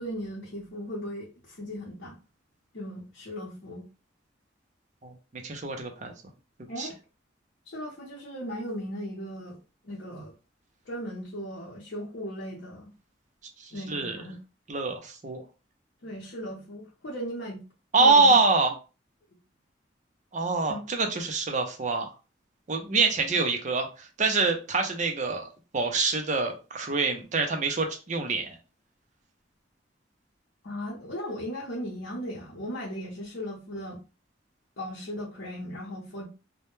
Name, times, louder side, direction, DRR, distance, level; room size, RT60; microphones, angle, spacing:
voice 1, 0.0-2.2 2.7-3.9 6.7-7.0 7.7-9.6 9.8-10.3 10.9-12.9 13.7-14.4 16.0-17.6 18.0-18.4 20.7-20.8 30.6-34.0 34.8-36.3, equal, 70° left, -6 dB, 0.7 m, -37 dB
voice 2, 5.4-6.1 6.8-6.9 13.6-14.2 14.7-15.4 17.9-18.7 20.3-22.1 22.7-28.6, right 3 dB, 40° right, 4 dB, 0.5 m, -25 dB
2.1 x 2.1 x 3.0 m, 0.32 s
head